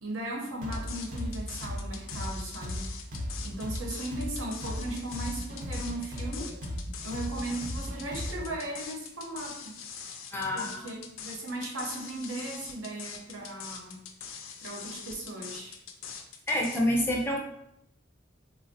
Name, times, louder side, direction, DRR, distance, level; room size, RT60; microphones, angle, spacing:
voice 1, 0.0-2.9 3.4-6.5 7.0-9.8 10.5-14.1 14.6-15.8, right 1 dB, 80° right, -1 dB, 0.7 m, -37 dB
sound 1, 0.6-8.5, left 1 dB, 40° right, 0.5 m, -36 dB
sound 2, 0.7-16.8, left 7 dB, 80° left, 0.4 m, -43 dB
voice 2, 10.3-10.9 16.5-17.4, left 1 dB, 10° left, -1 dB, 0.4 m, -27 dB
3.3 x 2.0 x 2.6 m, 0.78 s
head